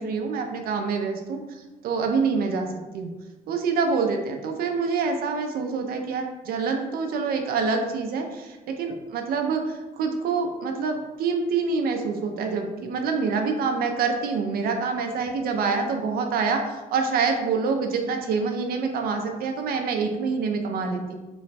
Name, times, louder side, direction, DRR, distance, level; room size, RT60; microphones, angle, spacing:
voice 1, 0.0-1.4 1.8-2.7 2.9-3.1 3.5-21.1, right 5 dB, 60° right, 3 dB, 0.5 m, -26 dB
3.0 x 2.1 x 4.1 m, 1.1 s
cardioid pair, 110°, 17 cm